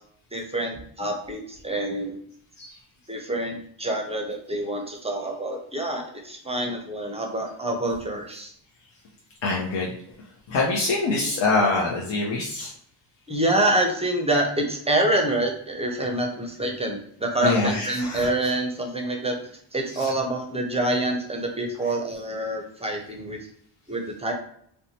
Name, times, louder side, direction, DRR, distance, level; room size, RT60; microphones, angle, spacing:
voice 1, 0.3-2.2 3.1-8.5 13.3-19.4 19.7-23.5 23.9-24.3, right 1 dB, 15° right, 2 dB, 0.6 m, -26 dB
voice 2, 9.4-9.9 10.5-12.7 17.4-18.3, left 3 dB, 65° left, -3 dB, 0.7 m, -24 dB
2.6 x 2.2 x 2.8 m, 0.66 s
cardioid pair, 70°, 48 cm